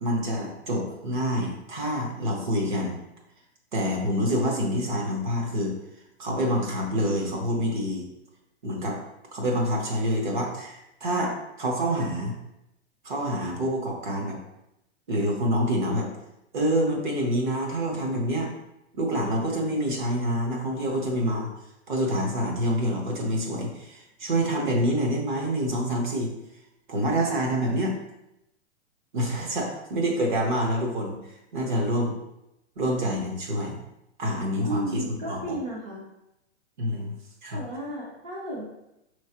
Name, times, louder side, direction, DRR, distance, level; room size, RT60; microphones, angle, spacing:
voice 1, 0.0-3.0 3.7-5.7 6.2-8.0 8.6-9.0 9.3-12.4 13.0-14.4 15.1-16.1 16.5-18.5 18.9-21.5 21.9-26.3 26.9-27.9 29.1-32.2 32.8-33.8 34.2-35.4 36.8-37.1 37.4-37.6, equal, 45° right, 0 dB, 1.0 m, -27 dB
voice 2, 34.6-36.1 37.5-38.6, right 2 dB, 25° right, -6 dB, 0.6 m, -33 dB
5.6 x 3.1 x 2.9 m, 0.87 s
hypercardioid pair, 175°, 35 cm